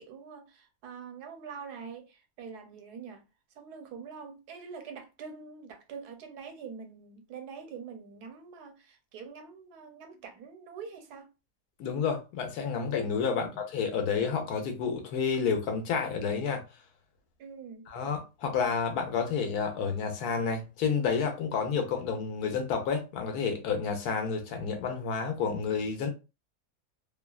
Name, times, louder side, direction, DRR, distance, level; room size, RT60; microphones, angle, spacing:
voice 1, 0.0-3.2 3.6-11.3 13.3-13.6 17.4-17.9, right 6 dB, 80° right, 1.2 m, -45 dB
voice 2, 11.8-16.6 17.9-26.1, left 6 dB, 75° left, 1.1 m, -30 dB
2.8 x 2.2 x 2.3 m
omnidirectional pair, 1.7 m